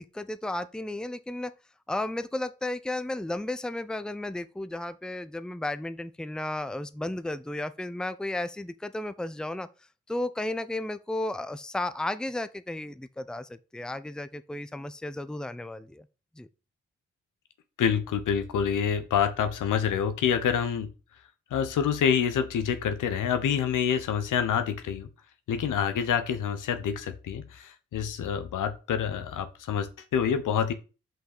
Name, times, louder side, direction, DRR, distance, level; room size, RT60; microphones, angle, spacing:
voice 1, 0.0-1.5 1.9-9.7 10.1-16.1 16.4-16.5, left 1 dB, ahead, 0.7 m, -33 dB
voice 2, 17.8-20.9 21.5-25.1 25.5-30.7, left 8 dB, 70° left, 1.2 m, -27 dB
5.7 x 5.6 x 6.6 m
hypercardioid pair, 40°, 32 cm